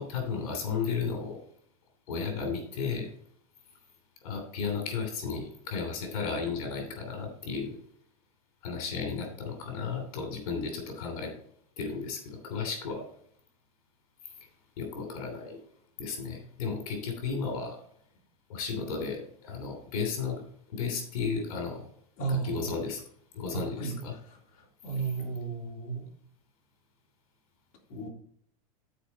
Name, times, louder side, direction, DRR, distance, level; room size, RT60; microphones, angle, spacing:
voice 1, 0.0-1.4 2.1-3.1 4.2-7.8 8.6-11.3 11.8-13.1 14.2-14.5 14.8-15.6 16.0-17.8 18.5-21.9 22.3-23.0 23.3-24.1, left 5 dB, 75° left, 3 dB, 3.0 m, -34 dB
voice 2, 22.2-22.7 23.5-24.0 24.2-26.1 27.9-28.1, right 4 dB, 50° left, -2 dB, 3.2 m, -34 dB
12.0 x 5.0 x 4.2 m, 0.62 s
supercardioid pair, 120°, 19 cm